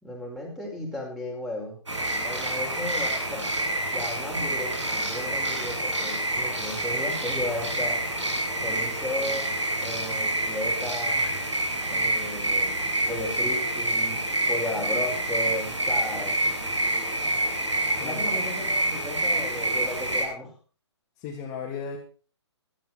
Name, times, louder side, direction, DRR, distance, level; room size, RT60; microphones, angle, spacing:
voice 1, 0.0-1.8 2.2-3.5 3.9-8.0 8.6-9.5 9.8-11.3 11.9-16.4 18.0-20.5, left 1 dB, ahead, 0 dB, 4.9 m, -34 dB
sound 1, 1.9-20.2, right 1 dB, 85° right, 7.4 m, -27 dB
voice 2, 18.0-18.4 21.2-22.0, left 6 dB, 25° left, -1 dB, 2.9 m, -35 dB
16.5 x 13.0 x 4.2 m, 0.36 s
figure-of-eight pair, 130°, 15 cm